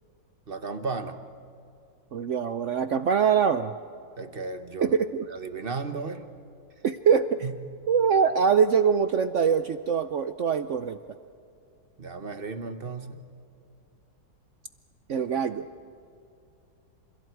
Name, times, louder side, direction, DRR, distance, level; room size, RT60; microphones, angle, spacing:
voice 1, 0.5-1.2 4.2-5.0 5.3-6.3 7.4-7.6 12.0-13.3, right 4 dB, 35° right, 8 dB, 1.2 m, -34 dB
voice 2, 2.1-3.7 4.8-5.3 6.8-7.5 7.9-11.0 15.1-15.7, right 6 dB, 70° right, 10 dB, 0.7 m, -23 dB
30.0 x 28.0 x 4.7 m, 2.6 s
omnidirectional pair, 2.0 m